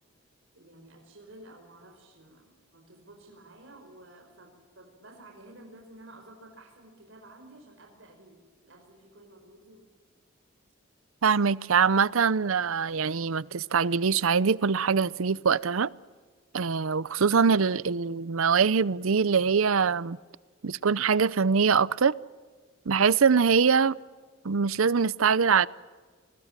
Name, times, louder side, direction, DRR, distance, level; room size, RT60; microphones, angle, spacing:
voice 1, 0.5-9.9, right 1 dB, 65° right, 5.1 m, -52 dB
voice 2, 11.2-15.9 16.5-20.2 20.6-22.1 22.9-24.0 24.4-25.7, right 6 dB, 80° right, 0.6 m, -23 dB
sound 1, 15.8-16.2 18.3-18.4, left 1 dB, 75° left, 5.7 m, -60 dB
29.0 x 21.0 x 7.4 m
head